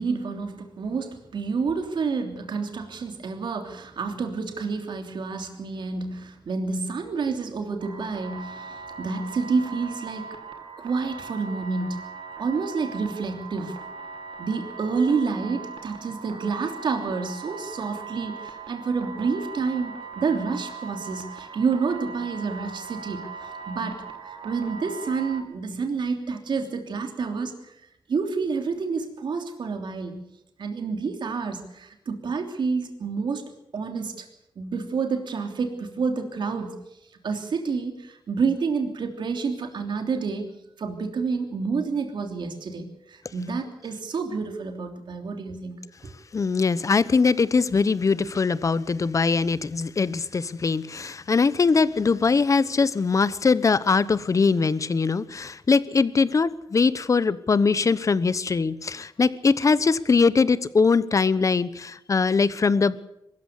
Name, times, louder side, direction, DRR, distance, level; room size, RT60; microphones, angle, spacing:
voice 1, 0.0-10.3 10.8-12.0 12.4-13.8 14.4-23.3 23.7-27.7 28.1-30.2 30.6-33.4 33.7-34.3 34.6-36.8 37.2-40.5 40.8-45.8 46.0-46.1, right 4 dB, 65° right, 5 dB, 3.2 m, -29 dB
sound 1, 7.8-25.4, right 5 dB, 85° right, 2.8 m, -40 dB
voice 2, 46.3-63.1, left 4 dB, 40° left, 16 dB, 1.0 m, -22 dB
23.0 x 14.0 x 8.1 m, 0.84 s
wide cardioid pair, 100°, 9 cm